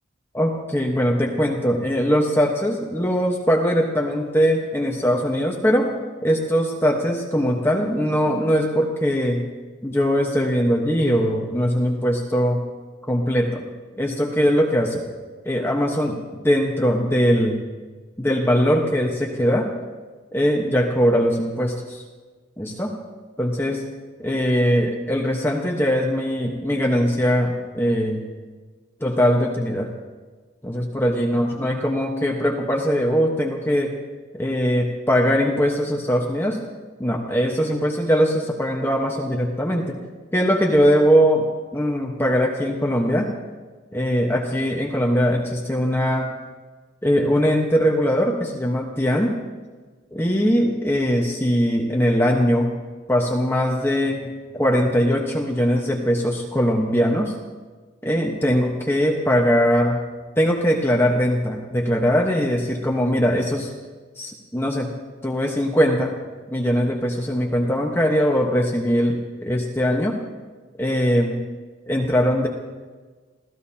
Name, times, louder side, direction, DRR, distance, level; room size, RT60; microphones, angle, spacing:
voice 1, 0.3-5.9 6.2-9.4 9.8-12.6 13.1-13.6 14.0-15.1 15.4-17.6 18.2-19.7 20.3-22.0 22.6-23.0 23.4-23.9 24.2-28.2 29.0-29.9 30.6-34.0 34.3-36.6 37.0-40.0 40.3-43.3 43.9-46.3 47.0-49.4 50.1-52.7 53.1-57.4 58.0-60.0 60.4-63.7 64.2-64.9 65.2-66.2 66.5-70.2 70.8-71.4 71.9-72.5, equal, 10° left, -1 dB, 1.2 m, -21 dB
28.5 x 17.0 x 2.9 m, 1.4 s
head